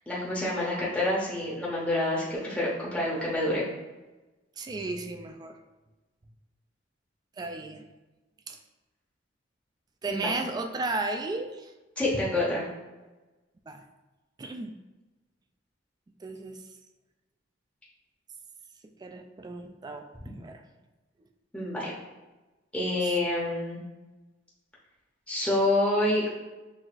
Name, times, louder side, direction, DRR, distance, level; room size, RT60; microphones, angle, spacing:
voice 1, 0.1-3.6 10.1-10.3 12.0-12.6 21.5-21.9 22.7-23.8 25.3-26.3, left 1 dB, 5° left, -6 dB, 0.7 m, -27 dB
voice 2, 4.6-5.6 7.4-7.8 8.5-8.6 10.0-11.7 13.7-13.8 14.4-14.7 16.2-16.6 19.0-20.6 23.0-23.2, right 3 dB, 20° right, 5 dB, 0.3 m, -34 dB
6.0 x 2.5 x 2.5 m, 1.1 s
head